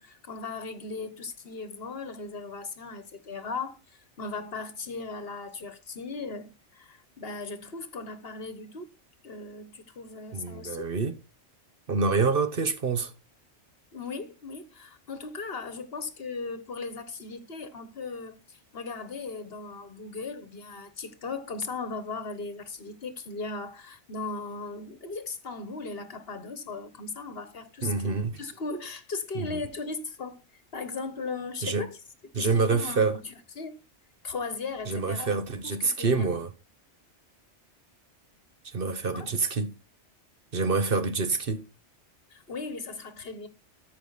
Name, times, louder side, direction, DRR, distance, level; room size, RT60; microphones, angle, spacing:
voice 1, 0.0-8.9 9.2-10.9 13.9-32.0 32.3-33.8 34.2-35.4 35.6-36.3 39.1-39.3 42.3-43.5, left 4 dB, 55° left, 1.3 m, -37 dB
voice 2, 10.3-11.1 11.9-13.1 27.8-28.4 29.3-29.5 31.6-31.9 32.3-33.2 34.9-36.5 38.7-39.7 40.5-41.6, right 4 dB, 50° right, 1.2 m, -26 dB
13.5 x 5.2 x 4.0 m
omnidirectional pair, 1.2 m